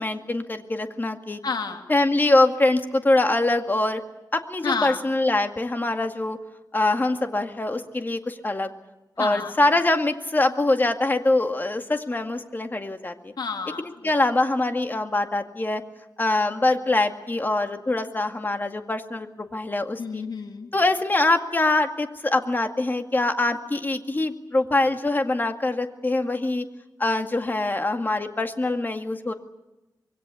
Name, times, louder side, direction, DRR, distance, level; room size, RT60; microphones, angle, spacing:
voice 1, 0.0-1.4 1.9-4.0 4.3-6.4 6.7-8.7 9.2-13.3 13.8-15.8 16.2-20.2 20.7-26.7 27.0-29.3, left 2 dB, 25° left, 6 dB, 2.1 m, -24 dB
voice 2, 1.4-1.8 4.6-5.0 9.2-9.5 13.4-13.8 20.0-20.7, left 5 dB, 80° left, 4 dB, 2.6 m, -29 dB
26.0 x 22.5 x 8.3 m, 0.98 s
wide cardioid pair, 130°, 7 cm